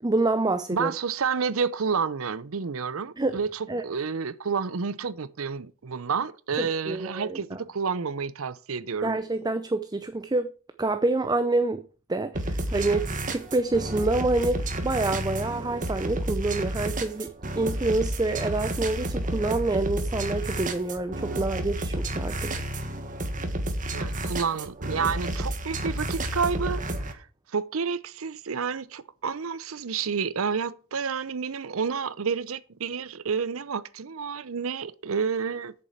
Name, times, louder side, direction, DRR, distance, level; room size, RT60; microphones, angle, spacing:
voice 1, 0.0-0.9 3.2-3.4 3.7-3.8 6.6-7.6 9.0-10.5 10.8-11.8 12.1-22.5, right 2 dB, 20° right, 0.6 m, -27 dB
voice 2, 0.7-9.2 23.9-27.3 27.5-35.7, right 5 dB, 75° right, 0.6 m, -30 dB
sound 1, 12.3-27.1, right 1 dB, 40° right, 1.5 m, -31 dB
8.2 x 6.9 x 7.1 m
head